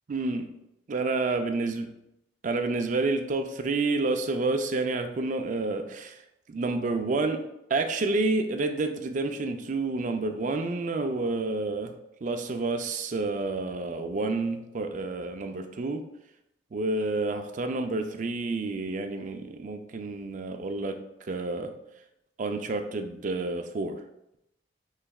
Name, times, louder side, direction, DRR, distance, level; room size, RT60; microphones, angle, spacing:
voice 1, 0.1-0.5 0.9-1.9 2.4-6.2 6.5-7.4 7.7-11.9 12.2-16.1 16.7-21.0 21.3-21.7 22.4-24.0, right 3 dB, 45° right, 6 dB, 0.4 m, -29 dB
5.5 x 3.2 x 2.3 m, 0.85 s
head